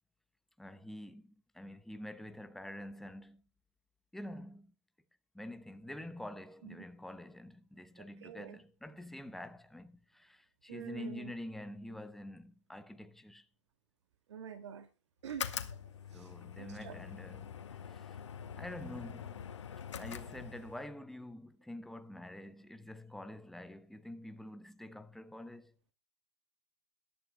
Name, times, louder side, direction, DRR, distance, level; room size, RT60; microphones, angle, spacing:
voice 1, 0.6-3.4 4.1-4.7 5.3-13.5 16.1-18.2 18.6-19.5 20.0-25.7, left 1 dB, ahead, 0.8 m, -47 dB
voice 2, 8.2-8.6 10.7-11.3 14.3-14.9 15.2-15.5 16.1-16.3 16.6-16.9, right 8 dB, 75° right, 2.3 m, -46 dB
sound 1, 15.2-20.9, left 8 dB, 85° left, 1.8 m, -44 dB
22.0 x 11.0 x 2.2 m
hypercardioid pair, 140°, 15 cm